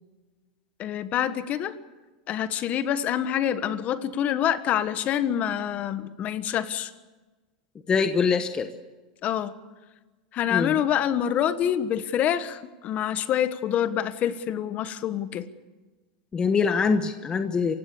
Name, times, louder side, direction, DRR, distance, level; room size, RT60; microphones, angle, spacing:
voice 1, 0.8-1.8 2.3-6.9 9.2-9.5 10.3-15.5, left 10 dB, 35° left, 12 dB, 1.4 m, -26 dB
voice 2, 7.9-8.7 10.5-10.8 16.3-17.7, left 5 dB, 20° left, 8 dB, 1.1 m, -23 dB
27.5 x 16.5 x 7.0 m, 1.2 s
supercardioid pair, 140°, 4 cm